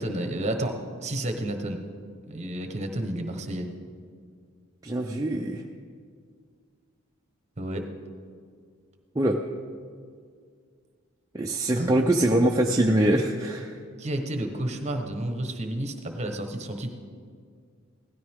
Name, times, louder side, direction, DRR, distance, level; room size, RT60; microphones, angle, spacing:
voice 1, 0.0-1.8 2.3-3.7 7.6-7.9 11.8-11.9 14.0-16.9, right 1 dB, 35° right, 5 dB, 1.1 m, -31 dB
voice 2, 4.8-5.6 9.2-9.4 11.3-13.7, right 1 dB, 15° right, 0 dB, 0.5 m, -23 dB
17.0 x 12.5 x 3.6 m, 2.1 s
head